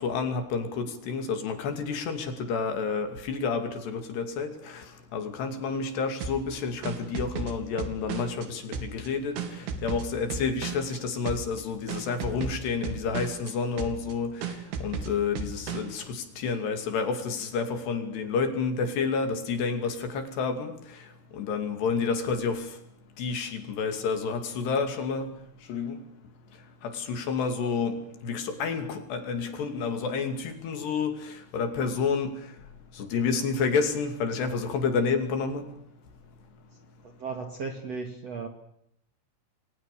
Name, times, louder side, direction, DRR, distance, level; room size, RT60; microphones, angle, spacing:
voice 1, 0.0-21.0 21.3-22.8 23.2-25.3 25.7-26.0 26.8-32.5 32.9-35.6, left 5 dB, 60° left, 7 dB, 4.5 m, -30 dB
sound 1, 6.2-8.5 8.7-11.0 11.3-11.6 11.9-13.5 13.8-14.1 14.4-16.0, right 5 dB, 80° right, 5.0 m, -35 dB
voice 2, 37.0-38.5, right 4 dB, 45° right, 5 dB, 2.4 m, -35 dB
29.5 x 23.0 x 6.9 m, 0.74 s
omnidirectional pair, 5.6 m